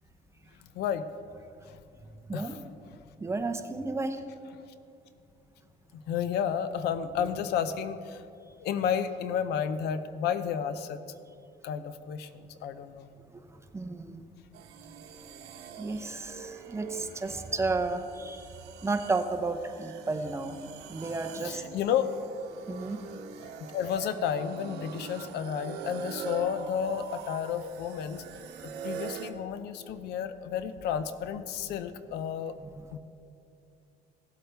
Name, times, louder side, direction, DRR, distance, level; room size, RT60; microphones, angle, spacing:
voice 1, 3.2-4.2 13.7-14.3 15.8-18.5 18.8-20.6 20.9-21.6 22.7-23.0 32.6-32.9, right 3 dB, 15° right, 7 dB, 0.7 m, -32 dB
voice 2, 5.9-8.2 8.6-11.0 11.6-13.1 21.4-22.1 23.6-28.3 28.6-32.5 32.9-33.0, left 8 dB, 80° left, 12 dB, 0.6 m, -32 dB
sound 1, 14.5-29.3, right 6 dB, 80° right, 0.9 m, -43 dB
16.5 x 7.9 x 3.4 m, 2.6 s
cardioid pair, 110°, 17 cm